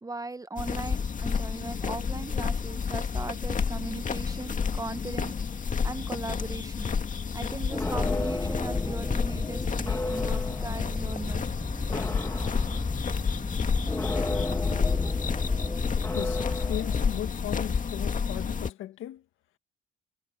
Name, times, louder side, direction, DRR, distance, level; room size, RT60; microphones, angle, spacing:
voice 1, 0.0-6.9 7.3-11.4, right 3 dB, 20° right, 1.2 m, -39 dB
sound 1, 0.6-18.7, left 6 dB, 40° left, 2.0 m, -30 dB
sound 2, 7.7-17.2, left 2 dB, 15° left, 1.5 m, -32 dB
voice 2, 16.1-19.2, left 12 dB, 85° left, 1.9 m, -37 dB
cardioid pair, 90°, 20 cm